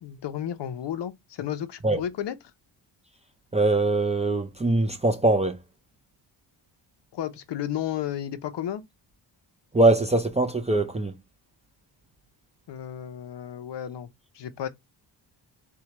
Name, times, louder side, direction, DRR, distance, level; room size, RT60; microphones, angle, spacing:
voice 1, 0.0-2.4 7.1-8.8 12.7-14.1 14.3-14.7, left 10 dB, 65° left, 0.7 m, -33 dB
voice 2, 3.5-5.6 9.7-11.1, right 2 dB, 15° right, 0.4 m, -22 dB
4.5 x 2.2 x 2.8 m
wide cardioid pair, 135°, 46 cm